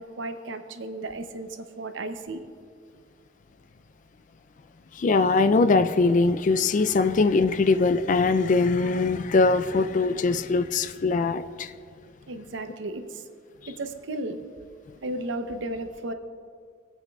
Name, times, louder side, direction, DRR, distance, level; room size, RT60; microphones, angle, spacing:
voice 1, 0.0-1.5 1.8-2.4 12.3-13.3 13.7-14.4 15.0-16.1, right 2 dB, 70° right, 8 dB, 0.7 m, -34 dB
voice 2, 4.9-11.7, left 3 dB, 40° left, 11 dB, 0.3 m, -22 dB
19.5 x 8.2 x 2.3 m, 2.1 s
head